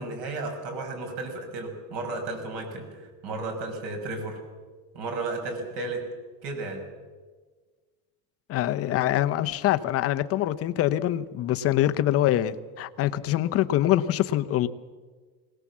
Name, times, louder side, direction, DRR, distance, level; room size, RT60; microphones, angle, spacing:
voice 1, 0.0-4.4 4.9-6.0 6.4-6.8, right 3 dB, 60° right, 6.0 m, -33 dB
voice 2, 8.5-14.7, left 13 dB, 30° left, 0.8 m, -24 dB
21.0 x 19.0 x 7.4 m
supercardioid pair, 155°, 45 cm